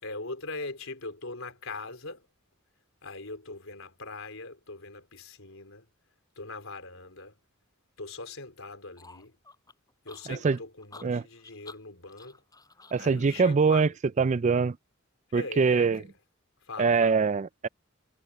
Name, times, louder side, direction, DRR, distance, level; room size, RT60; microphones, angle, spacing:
voice 1, 0.0-2.2 3.0-5.9 6.4-7.3 8.0-9.3 10.0-12.4 13.0-13.9 15.3-16.1 16.7-17.2, left 3 dB, 75° left, 4.5 m, -41 dB
sound 1, 9.0-13.5, left 3 dB, 20° left, 7.3 m, -52 dB
voice 2, 10.3-10.6 11.0-11.2 12.9-13.9 14.2-14.8 15.3-16.0 16.8-17.7, right 5 dB, 35° right, 0.4 m, -23 dB
head